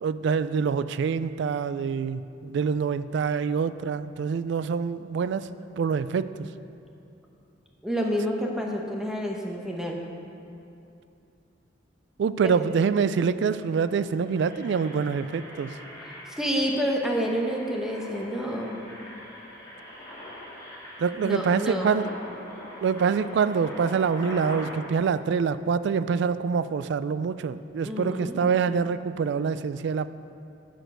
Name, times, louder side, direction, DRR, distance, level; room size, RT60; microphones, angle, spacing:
voice 1, 0.0-5.5 5.8-6.5 12.2-15.8 21.0-22.1 22.8-30.1, right 6 dB, 65° right, 14 dB, 0.3 m, -25 dB
voice 2, 7.8-10.0 12.4-12.5 16.3-18.8 21.2-21.9 27.8-28.4, equal, 5° right, 0 dB, 1.0 m, -28 dB
Engine, 13.3-13.6 14.0-24.7, left 1 dB, 20° left, 2.6 m, -43 dB
9.0 x 6.4 x 6.6 m, 2.6 s
head